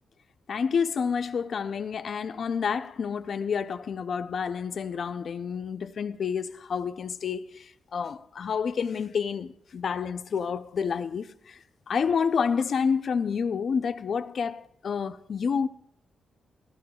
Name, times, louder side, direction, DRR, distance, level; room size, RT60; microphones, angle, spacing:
voice 1, 0.5-11.6 11.9-15.7, left 6 dB, 55° left, 0.5 m, -29 dB
19.0 x 14.5 x 2.3 m
cardioid pair, 115°, 0 cm